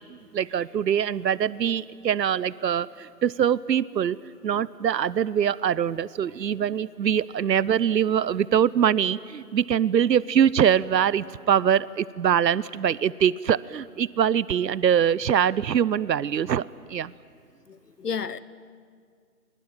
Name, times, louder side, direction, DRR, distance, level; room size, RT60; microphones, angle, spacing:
voice 1, 0.1-17.1, right 9 dB, 90° right, 21 dB, 0.7 m, -23 dB
voice 2, 17.7-18.4, left 6 dB, 70° left, 18 dB, 1.0 m, -32 dB
23.0 x 21.5 x 8.8 m, 2.1 s
hypercardioid pair, 175°, 49 cm